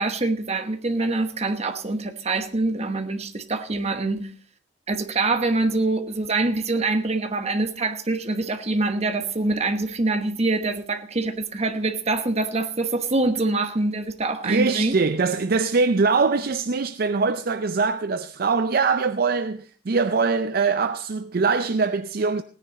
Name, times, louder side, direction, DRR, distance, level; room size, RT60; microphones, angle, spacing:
voice 1, 0.0-4.3 4.9-15.0, right 2 dB, 35° right, 1.2 m, -25 dB
voice 2, 14.4-22.4, right 4 dB, 55° right, 0.5 m, -22 dB
17.0 x 10.0 x 4.1 m
head